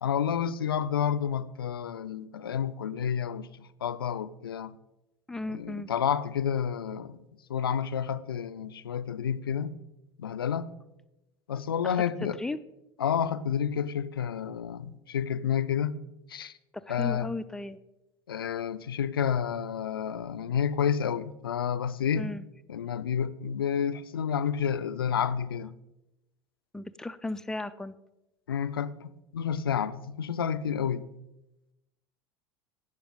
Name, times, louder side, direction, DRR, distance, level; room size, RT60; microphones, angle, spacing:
voice 1, 0.0-3.5 3.8-4.8 5.5-7.2 7.5-9.7 10.2-10.7 11.5-12.4 13.0-15.9 16.3-16.5 16.9-17.3 18.3-22.3 22.7-25.7 28.5-31.1, left 8 dB, 75° left, 0.4 m, -30 dB
voice 2, 5.3-5.9 11.8-12.6 16.7-17.8 22.2-22.4 26.7-27.9, left 2 dB, 5° left, 0.4 m, -36 dB
17.0 x 5.7 x 3.8 m
figure-of-eight pair, 75°, 12 cm